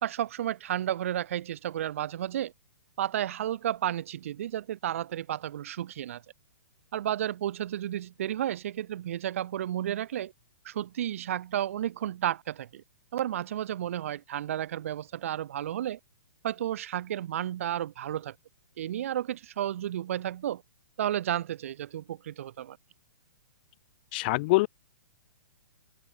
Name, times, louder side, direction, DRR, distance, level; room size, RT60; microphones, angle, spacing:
voice 1, 0.0-2.5 3.0-6.2 6.9-10.3 10.6-12.8 13.1-16.0 16.4-18.3 18.8-20.6 21.0-22.8, right 11 dB, 55° right, 3.0 m, -32 dB
voice 2, 24.1-24.7, left 22 dB, 40° left, 0.9 m, -24 dB
figure-of-eight pair, 120°, 9 cm